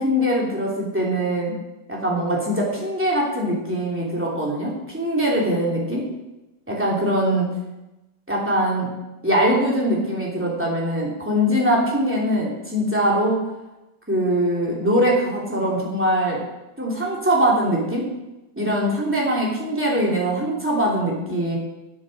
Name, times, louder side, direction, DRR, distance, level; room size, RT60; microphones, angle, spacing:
voice 1, 0.0-1.5 1.9-6.0 6.7-7.5 8.3-8.9 9.2-13.4 14.1-16.4 16.8-18.0 18.6-21.6, equal, 5° right, -4 dB, 3.0 m, -22 dB
11.5 x 8.0 x 6.5 m, 0.99 s
omnidirectional pair, 2.0 m